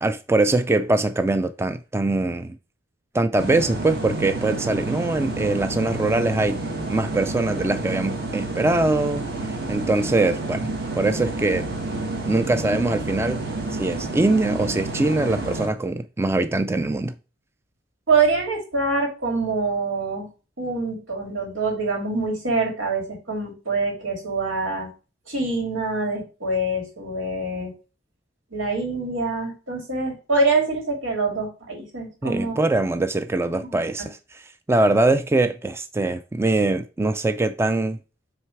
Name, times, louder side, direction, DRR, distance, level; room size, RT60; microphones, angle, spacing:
voice 1, 0.0-2.5 3.1-6.6 6.9-9.3 9.7-10.7 11.0-11.7 12.3-13.4 13.7-17.1 32.2-34.2 34.7-38.0, right 2 dB, 15° right, 0.3 m, -22 dB
sound 1, 3.4-15.7, right 2 dB, 60° right, 1.5 m, -29 dB
voice 2, 18.1-20.3 20.6-24.9 25.3-27.7 28.5-32.6 33.6-34.1, right 3 dB, 90° right, 2.6 m, -25 dB
7.7 x 3.3 x 4.5 m
head